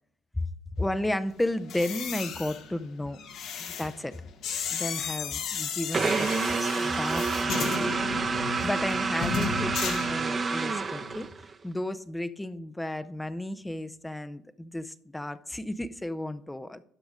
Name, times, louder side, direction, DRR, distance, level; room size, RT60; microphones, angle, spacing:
voice 1, 0.8-3.2 3.6-4.2 4.7-7.9 8.6-11.3 11.6-16.8, left 1 dB, 10° left, 11 dB, 0.6 m, -33 dB
sound 1, 1.6-10.7 10.9-11.3, left 6 dB, 70° left, 1.3 m, -35 dB
sound 2, 5.9-11.5, right 4 dB, 35° right, 0.8 m, -28 dB
12.0 x 5.2 x 5.0 m, 0.71 s
supercardioid pair, 70°, 0 cm